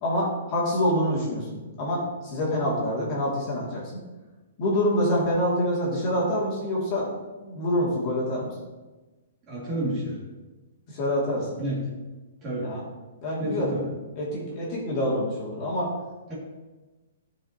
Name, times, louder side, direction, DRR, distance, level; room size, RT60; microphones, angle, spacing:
voice 1, 0.0-3.8 4.6-7.1 7.4-8.5 10.9-11.6 12.6-12.8 13.2-13.9 14.2-15.9, equal, 30° left, -6 dB, 2.2 m, -26 dB
voice 2, 9.5-10.2 11.6-11.8 12.4-12.7 13.4-13.9 16.3-16.4, right 1 dB, 20° right, -6 dB, 2.1 m, -29 dB
13.0 x 5.0 x 2.8 m, 1.2 s
hypercardioid pair, 165°, 0 cm